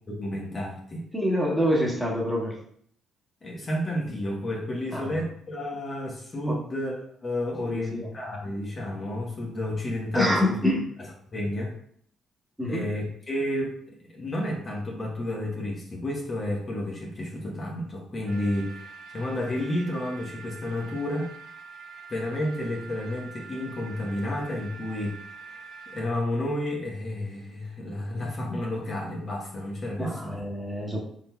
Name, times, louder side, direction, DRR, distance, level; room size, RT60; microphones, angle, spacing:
voice 1, 0.1-1.0 3.4-6.9 7.2-10.6 11.3-11.7 12.6-13.7 14.1-21.3 22.1-25.2 25.9-30.4, left 1 dB, 35° left, -2 dB, 1.0 m, -31 dB
voice 2, 1.1-2.6 4.9-5.1 6.5-6.6 7.6-8.1 10.1-10.9 12.6-12.8 30.0-31.1, left 1 dB, 5° right, -3 dB, 1.2 m, -26 dB
sound 1, 18.3-26.0, right 5 dB, 85° right, 1.1 m, -45 dB
4.4 x 3.8 x 2.3 m, 0.63 s
cardioid pair, 90°, 0 cm